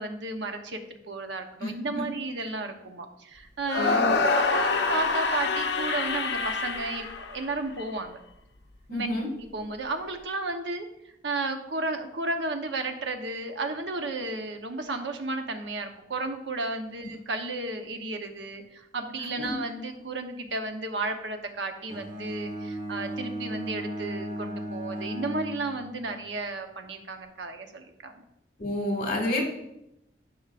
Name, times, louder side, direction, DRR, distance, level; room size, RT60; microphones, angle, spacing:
voice 1, 0.0-8.2 8.9-9.1 9.4-10.9 11.2-28.2, right 2 dB, 85° right, 5 dB, 1.0 m, -33 dB
voice 2, 1.6-2.0 3.8-4.3 8.9-9.3 19.4-19.5 28.6-29.4, left 1 dB, 50° left, 0 dB, 2.4 m, -29 dB
sound 1, 3.6-7.8, left 4 dB, 70° left, 0.8 m, -26 dB
Bowed string instrument, 21.9-26.1, equal, 35° right, 1.7 m, -36 dB
13.5 x 6.1 x 2.5 m, 0.83 s
head